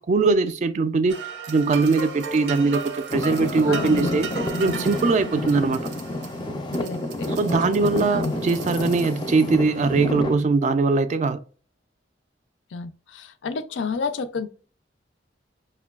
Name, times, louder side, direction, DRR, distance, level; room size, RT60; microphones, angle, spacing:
voice 1, 0.1-2.8 3.1-4.3 4.6-5.8 7.4-11.4, right 4 dB, 40° right, 0.3 m, -21 dB
sound 1, 1.1-9.4, right 5 dB, 80° right, 0.6 m, -36 dB
Traffic noise roadway noise / Engine, 3.1-10.4, left 1 dB, 25° left, 0.4 m, -29 dB
voice 2, 3.7-5.4 6.8-8.3 12.7-14.5, left 4 dB, 90° left, 0.4 m, -32 dB
5.2 x 2.2 x 2.3 m
head